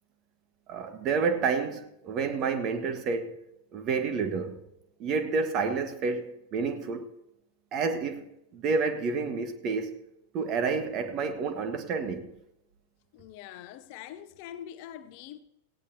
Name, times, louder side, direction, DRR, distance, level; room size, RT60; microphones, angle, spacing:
voice 1, 0.7-3.4 3.7-4.6 5.0-7.1 7.7-10.0 10.3-12.3, right 5 dB, 35° right, 1.5 m, -29 dB
voice 2, 13.1-15.4, left 11 dB, 45° left, 0.8 m, -44 dB
17.5 x 17.0 x 2.9 m
figure-of-eight pair, 90°, 0 cm